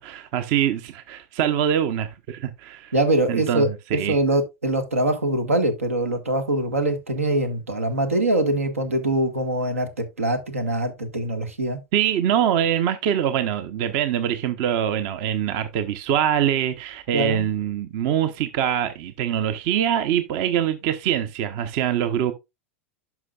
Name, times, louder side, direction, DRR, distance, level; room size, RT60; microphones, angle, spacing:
voice 1, 0.0-2.9 3.3-4.2 11.9-22.3, right 10 dB, 50° right, 0.9 m, -24 dB
voice 2, 2.9-11.8 17.1-17.5, right 1 dB, 85° right, 1.6 m, -23 dB
11.0 x 5.9 x 2.4 m
figure-of-eight pair, 95°, 7 cm